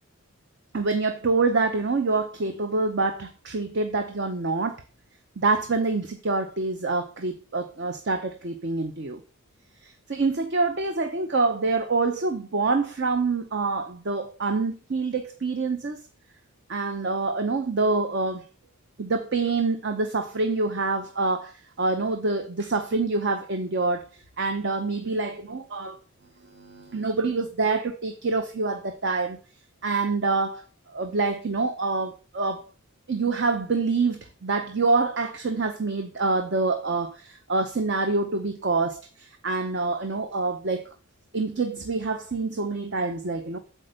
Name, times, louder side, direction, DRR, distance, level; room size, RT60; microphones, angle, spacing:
voice 1, 0.7-4.8 5.4-9.2 9.8-16.0 16.7-18.4 19.0-24.1 24.4-26.0 26.6-29.4 29.8-32.6 33.1-40.8 41.3-43.6, right 3 dB, 50° right, 0.7 m, -26 dB
8.4 x 4.4 x 6.4 m
head